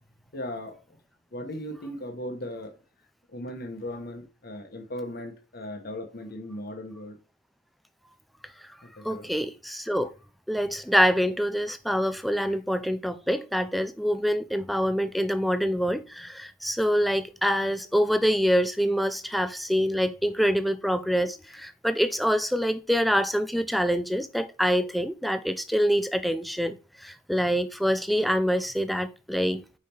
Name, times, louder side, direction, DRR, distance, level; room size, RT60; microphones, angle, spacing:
voice 1, 0.3-0.8 1.3-2.7 3.3-7.2 8.8-9.3 12.3-12.6, left 1 dB, 45° left, 1.1 m, -37 dB
voice 2, 9.0-10.1 10.5-29.6, equal, ahead, 0.4 m, -25 dB
5.5 x 4.7 x 4.4 m
head